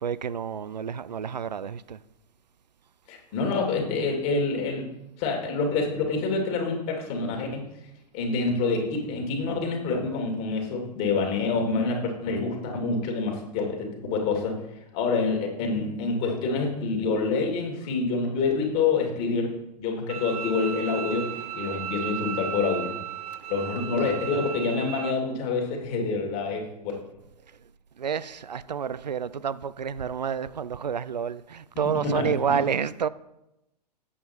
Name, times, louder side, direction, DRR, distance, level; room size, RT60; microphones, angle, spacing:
voice 1, 0.0-2.0 28.0-33.1, right 7 dB, 85° right, 0.4 m, -29 dB
voice 2, 3.1-4.9 5.2-7.6 8.1-14.6 14.9-22.9 23.5-27.0 32.0-32.6, left 4 dB, 45° left, 2.5 m, -27 dB
Bowed string instrument, 20.1-25.1, right 9 dB, 65° right, 1.0 m, -35 dB
8.6 x 7.1 x 4.4 m
figure-of-eight pair, 100°, 21 cm